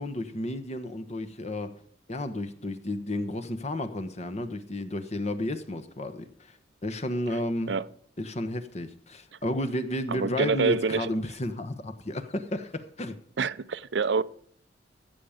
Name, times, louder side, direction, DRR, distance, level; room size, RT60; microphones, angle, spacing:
voice 1, 0.0-1.7 2.1-6.5 6.8-7.7 8.2-13.2, left 1 dB, 40° left, 1.1 m, -32 dB
voice 2, 10.1-11.1 13.4-14.2, right 4 dB, 80° right, 0.6 m, -26 dB
15.5 x 7.3 x 5.1 m
head